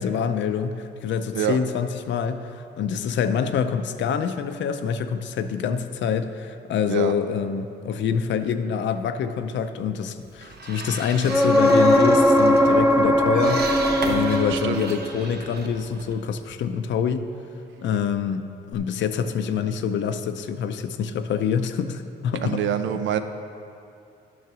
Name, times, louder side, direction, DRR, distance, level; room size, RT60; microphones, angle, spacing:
voice 1, 0.0-2.5 2.8-13.7 14.0-17.3 17.8-22.6, left 7 dB, 70° left, 9 dB, 0.6 m, -26 dB
sound 1, 10.2-16.7, right 3 dB, 55° right, 1.1 m, -36 dB
sound 2, 11.3-15.1 18.7-18.8, equal, 5° right, 0.7 m, -19 dB
voice 2, 14.5-14.8 22.4-23.2, right 10 dB, 75° right, 9 dB, 0.6 m, -25 dB
9.4 x 5.8 x 6.1 m, 2.5 s
cardioid pair, 90°, 20 cm